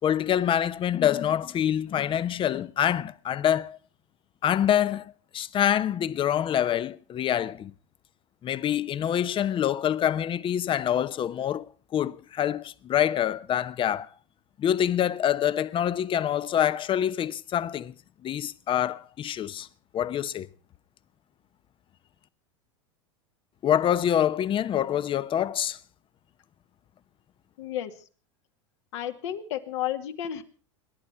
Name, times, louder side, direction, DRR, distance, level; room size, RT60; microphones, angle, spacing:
voice 1, 0.0-3.8 4.4-7.7 8.4-14.1 14.6-17.9 18.2-19.7 19.9-20.5 23.6-25.8, left 10 dB, 30° left, 0.9 m, -26 dB
voice 2, 27.6-28.0 28.9-30.4, left 11 dB, 70° left, 2.3 m, -32 dB
27.5 x 11.0 x 4.5 m
hypercardioid pair, 95°, 16 cm